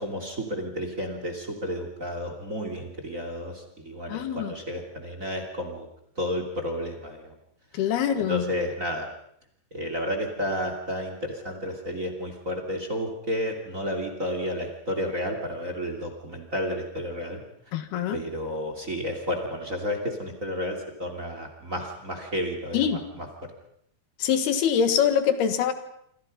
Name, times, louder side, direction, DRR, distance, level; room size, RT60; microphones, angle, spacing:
voice 1, 0.0-5.9 6.2-7.3 7.9-9.1 9.7-17.4 18.1-23.3, equal, 25° right, 5 dB, 2.7 m, -31 dB
voice 2, 4.1-4.5 7.7-8.5 17.7-18.2 22.7-23.0 24.2-25.7, left 8 dB, 80° left, 10 dB, 3.5 m, -24 dB
28.0 x 25.0 x 5.4 m, 0.70 s
omnidirectional pair, 4.5 m